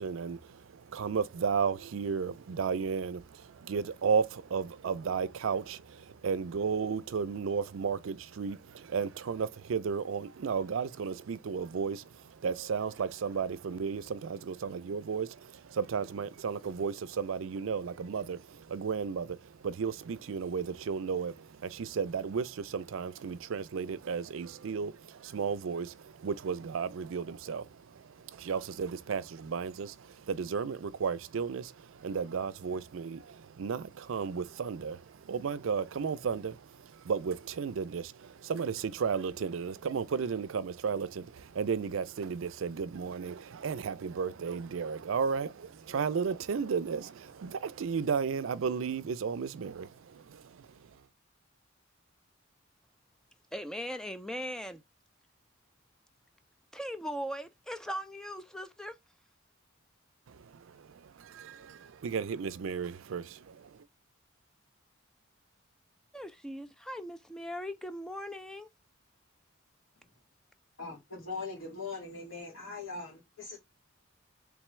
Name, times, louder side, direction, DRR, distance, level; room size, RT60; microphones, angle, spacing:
voice 1, 0.0-51.0 60.3-63.8, right 6 dB, 75° right, 0.4 m, -34 dB
voice 2, 53.5-54.8 56.7-59.0 66.1-68.7, equal, 5° left, 0.4 m, -39 dB
voice 3, 70.8-73.6, left 3 dB, 85° left, 2.3 m, -41 dB
3.6 x 3.5 x 3.1 m
head